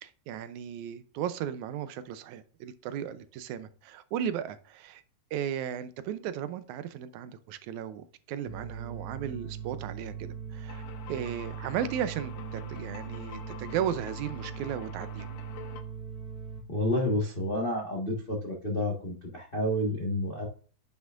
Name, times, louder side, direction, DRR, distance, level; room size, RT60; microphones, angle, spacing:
voice 1, 0.0-5.0 5.3-10.8 11.1-15.3, right 9 dB, 80° right, 13 dB, 1.9 m, -35 dB
sound 1, 8.5-16.6, right 7 dB, 20° right, 2.2 m, -40 dB
sound 2, 10.7-15.8, left 7 dB, 70° left, 1.4 m, -46 dB
voice 2, 16.7-20.5, left 1 dB, 85° left, -1 dB, 0.5 m, -30 dB
9.4 x 5.9 x 2.4 m, 0.41 s
omnidirectional pair, 3.6 m